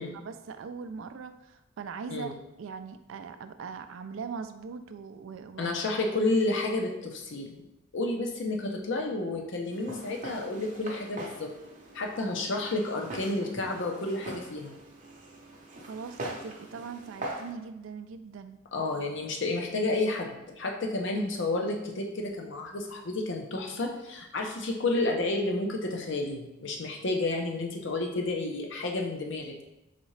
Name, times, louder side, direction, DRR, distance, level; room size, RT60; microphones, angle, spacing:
voice 1, 0.0-5.7 15.9-18.6, right 5 dB, 70° right, 9 dB, 0.3 m, -41 dB
voice 2, 5.6-7.6 7.9-11.5 11.9-14.7 18.7-29.6, left 2 dB, 60° left, 1 dB, 0.6 m, -31 dB
Walk footsteps, 9.7-17.5, right 1 dB, 40° right, 0.7 m, -42 dB
4.1 x 3.6 x 3.2 m, 0.93 s
head